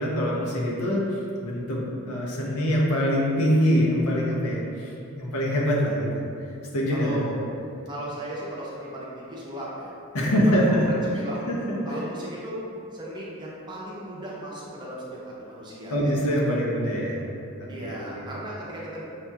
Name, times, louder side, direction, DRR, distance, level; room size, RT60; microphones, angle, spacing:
voice 1, 0.0-6.2 6.7-7.3 10.1-11.0 11.5-11.8 15.9-17.3 17.6-18.3, equal, 85° left, -3 dB, 0.8 m, -24 dB
voice 2, 6.9-7.4 7.9-9.9 10.2-10.8 11.1-11.5 11.8-12.6 12.9-16.0 17.7-19.0, right 1 dB, 20° right, -6 dB, 0.6 m, -36 dB
5.8 x 2.8 x 2.3 m, 2.6 s
head